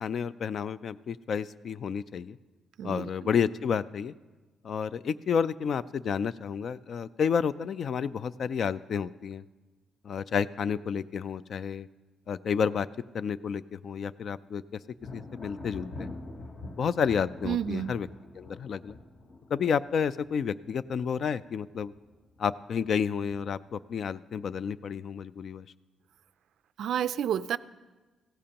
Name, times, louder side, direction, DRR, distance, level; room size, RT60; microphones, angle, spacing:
voice 1, 0.0-2.4 2.8-4.1 4.6-9.4 10.0-11.9 12.3-12.9 13.1-14.8 15.1-16.2 16.8-18.1 18.4-19.0 19.5-21.9 22.4-25.7, left 7 dB, 55° left, 17 dB, 0.3 m, -30 dB
voice 2, 2.8-3.1 17.4-17.9 26.8-27.6, right 9 dB, 75° right, 15 dB, 0.3 m, -30 dB
Thunder, 15.0-21.5 21.8-22.4 22.8-23.7, left 2 dB, 40° left, 0.9 m, -45 dB
16.0 x 14.0 x 2.9 m, 1.2 s
cardioid pair, 110°, 0 cm